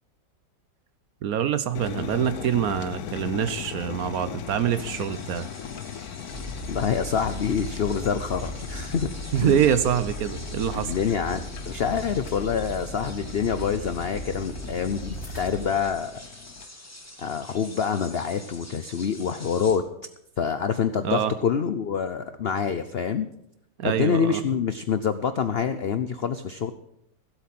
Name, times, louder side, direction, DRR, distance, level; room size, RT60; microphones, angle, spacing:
voice 1, 1.2-5.5 9.3-10.9 21.0-21.3 23.8-24.4, right 9 dB, 65° right, 13 dB, 1.1 m, -25 dB
sound 1, 1.7-16.7, left 9 dB, 65° left, 1.2 m, -39 dB
sound 2, 4.7-19.8, left 1 dB, 10° left, 1.4 m, -46 dB
sound 3, 6.3-15.7, equal, 35° left, 3.2 m, -37 dB
voice 2, 6.7-9.1 9.4-9.6 10.7-16.2 17.2-19.8 20.4-23.3 23.8-26.7, left 7 dB, 85° left, 10 dB, 0.5 m, -26 dB
16.0 x 8.1 x 5.9 m, 0.79 s
omnidirectional pair, 1.9 m